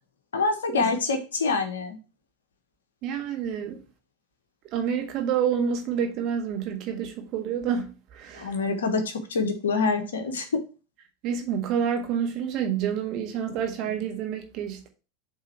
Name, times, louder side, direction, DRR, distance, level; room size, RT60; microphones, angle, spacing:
voice 1, 0.3-2.0 8.3-10.5, left 4 dB, 75° left, 1.2 m, -26 dB
voice 2, 3.0-3.8 4.7-8.5 11.2-14.9, right 8 dB, 45° right, 1.6 m, -28 dB
7.8 x 3.6 x 4.5 m
figure-of-eight pair, 80°, 0 cm